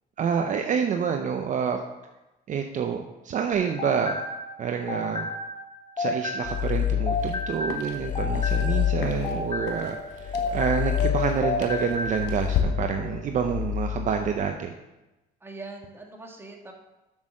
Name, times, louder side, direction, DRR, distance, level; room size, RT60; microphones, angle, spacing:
voice 1, 0.2-1.8 2.5-4.2 4.6-5.3 6.0-14.7, right 7 dB, 50° right, 5 dB, 0.7 m, -28 dB
sound 1, 3.5-6.8 7.1-11.1 11.4-12.2, left 2 dB, 30° left, 1.4 m, -32 dB
sound 2, 6.4-7.6 7.9-14.5, left 10 dB, 50° left, 0.6 m, -29 dB
sound 3, 7.1-12.6, left 9 dB, 85° left, 1.2 m, -37 dB
voice 2, 15.4-16.7, right 2 dB, 15° right, 1 dB, 1.8 m, -42 dB
7.0 x 6.5 x 6.4 m, 1.0 s
cardioid pair, 110°, 17 cm